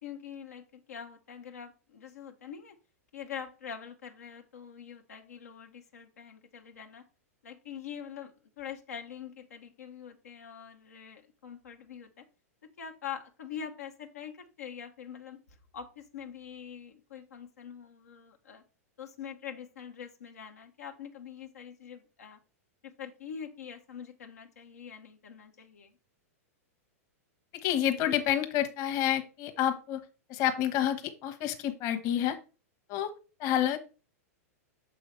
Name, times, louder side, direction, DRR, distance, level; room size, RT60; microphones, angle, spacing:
voice 1, 0.0-2.8 3.1-7.0 7.4-12.2 12.8-15.4 15.7-18.6 19.0-22.4 22.8-25.9, left 8 dB, 85° left, 3 dB, 1.0 m, -44 dB
voice 2, 27.6-30.0 30.3-32.4 32.9-33.1 33.4-33.8, left 11 dB, 45° left, 8 dB, 1.2 m, -29 dB
6.6 x 5.5 x 3.2 m, 0.33 s
hypercardioid pair, 110°, 8 cm